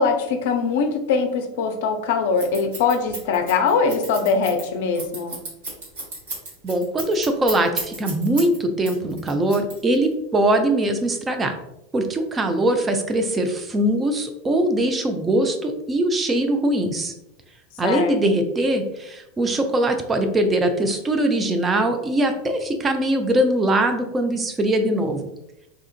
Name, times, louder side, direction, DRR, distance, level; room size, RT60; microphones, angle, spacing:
voice 1, 0.0-5.4 17.8-18.2, left 5 dB, 60° left, 6 dB, 0.4 m, -22 dB
Scissors, 2.4-8.6 8.8-10.1, right 2 dB, 65° right, 1.2 m, -33 dB
voice 2, 6.6-11.6 11.9-17.1 17.8-25.2, right 1 dB, 20° right, 5 dB, 0.4 m, -21 dB
3.7 x 2.4 x 2.4 m, 0.85 s
figure-of-eight pair, 85°, 0 cm